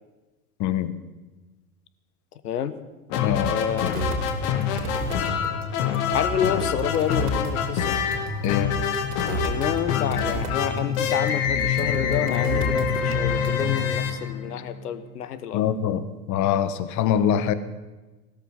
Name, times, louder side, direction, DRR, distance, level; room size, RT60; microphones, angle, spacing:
voice 1, 0.6-1.0 3.2-3.5 8.4-8.7 15.5-17.5, left 9 dB, 40° left, 13 dB, 1.2 m, -24 dB
voice 2, 2.4-2.7 3.4-4.1 6.1-8.0 9.4-15.6, left 9 dB, 75° left, 13 dB, 1.3 m, -29 dB
sound 1, 3.1-15.0, left 8 dB, 55° left, 1.8 m, -26 dB
sound 2, 3.3-13.9, right 2 dB, 80° right, 2.8 m, -32 dB
16.5 x 13.0 x 5.8 m, 1.2 s
hypercardioid pair, 95°, 46 cm